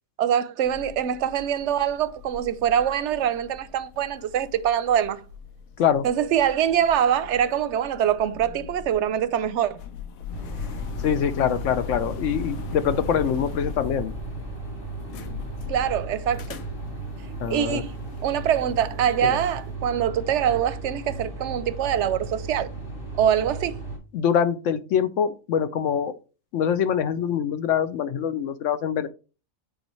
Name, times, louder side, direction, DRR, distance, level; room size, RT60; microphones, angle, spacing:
voice 1, 0.2-5.2 6.0-9.8 15.7-16.6 17.5-17.9 18.2-22.7 23.2-23.8, right 9 dB, 65° right, 0.8 m, -24 dB
sound 1, 0.6-19.5, left 6 dB, 90° left, 1.1 m, -40 dB
sound 2, 10.3-24.0, right 2 dB, 40° left, 2.1 m, -36 dB
voice 2, 11.0-14.1 17.4-17.8 19.2-19.4 24.1-26.1 26.5-29.1, left 8 dB, 70° left, 0.9 m, -24 dB
8.1 x 4.0 x 3.0 m
omnidirectional pair, 1.4 m